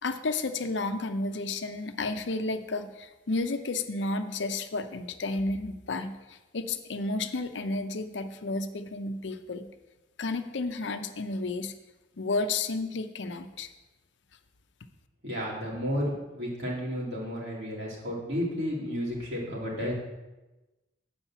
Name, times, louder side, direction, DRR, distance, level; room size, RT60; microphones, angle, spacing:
voice 1, 0.0-9.7 10.2-11.7 12.2-13.7, left 3 dB, 90° left, 8 dB, 0.7 m, -32 dB
voice 2, 15.2-19.9, equal, 75° right, -5 dB, 3.0 m, -32 dB
8.1 x 5.1 x 7.4 m, 1.1 s
head